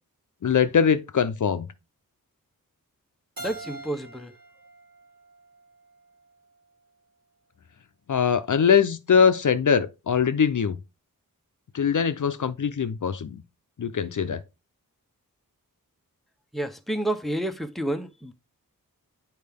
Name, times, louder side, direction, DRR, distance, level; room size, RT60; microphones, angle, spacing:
voice 1, 0.4-1.7 8.1-10.8 11.7-13.4 13.8-14.4, left 7 dB, 60° left, 0.6 m, -22 dB
voice 2, 3.4-4.3 16.5-18.3, right 1 dB, ahead, 0.8 m, -30 dB
Keyboard (musical), 3.4-6.2, right 2 dB, 75° right, 3.2 m, -43 dB
8.5 x 4.7 x 3.5 m
wide cardioid pair, 85°, 35 cm